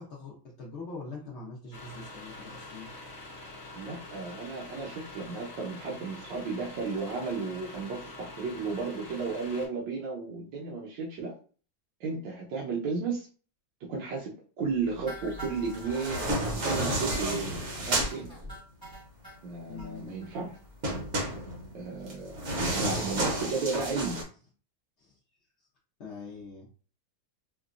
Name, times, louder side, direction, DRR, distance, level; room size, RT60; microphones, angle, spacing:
voice 1, 0.0-2.9 19.7-20.3 22.6-23.0 25.0-25.2 26.0-26.7, left 4 dB, 80° left, -4 dB, 0.6 m, -43 dB
sound 1, 1.7-9.7, left 2 dB, 40° left, 1.1 m, -45 dB
voice 2, 3.7-11.3 12.0-13.3 13.8-16.2 16.6-18.3 19.4-20.5 21.7-24.2, right 4 dB, 70° right, -3 dB, 1.3 m, -34 dB
sound 2, 15.1-19.4 19.8-19.9 20.2-20.3 20.5-20.7 21.0-21.1, left 1 dB, 15° right, 0.8 m, -42 dB
sound 3, 15.7-18.2 20.8-24.2, right 1 dB, 50° right, 0.9 m, -31 dB
4.4 x 2.1 x 2.5 m, 0.38 s
omnidirectional pair, 2.2 m